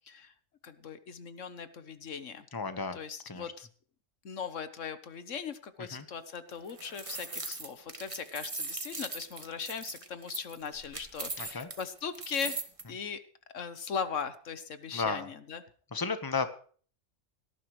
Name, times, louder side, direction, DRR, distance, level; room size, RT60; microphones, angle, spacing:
voice 1, 0.6-2.4 2.9-3.7 4.2-12.6 12.9-13.2 13.5-15.6, left 6 dB, 75° left, 11 dB, 1.5 m, -39 dB
voice 2, 2.5-3.0 3.3-3.5 5.9-6.0 11.4-11.7 14.9-15.3 15.9-16.5, left 4 dB, 20° left, 9 dB, 1.2 m, -33 dB
sound 1, 6.5-12.8, right 3 dB, 25° right, 1.5 m, -40 dB
18.0 x 13.5 x 3.2 m, 0.43 s
omnidirectional pair, 1.3 m